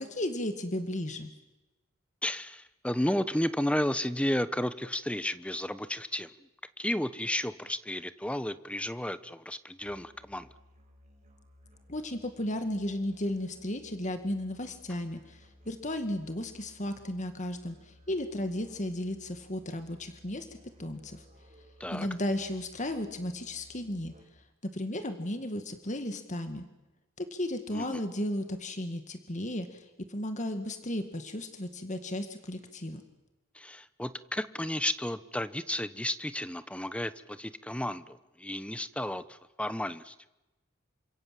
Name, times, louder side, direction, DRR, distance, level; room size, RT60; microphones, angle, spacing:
voice 1, 0.1-1.3 11.9-20.5 20.8-21.2 21.9-24.1 24.6-26.7 27.2-33.0, left 1 dB, 40° left, 7 dB, 2.0 m, -34 dB
voice 2, 2.2-6.3 6.8-10.5 21.8-22.1 27.7-28.0 33.5-40.1, left 1 dB, 5° left, 14 dB, 1.0 m, -33 dB
Musical instrument, 9.8-24.5, equal, 35° right, 6.2 m, -59 dB
29.0 x 26.5 x 7.7 m, 1.0 s
head